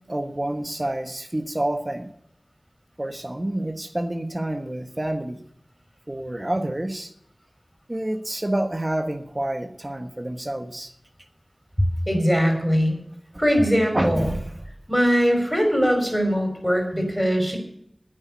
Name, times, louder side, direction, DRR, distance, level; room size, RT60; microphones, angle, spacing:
voice 1, 0.1-2.1 3.0-5.4 6.1-7.1 7.9-10.9 13.9-14.6, right 1 dB, 35° right, 6 dB, 1.3 m, -28 dB
voice 2, 11.8-13.0 13.4-14.2 14.9-17.6, equal, ahead, 3 dB, 5.0 m, -21 dB
10.0 x 8.7 x 8.4 m, 0.73 s
wide cardioid pair, 45°, 0 cm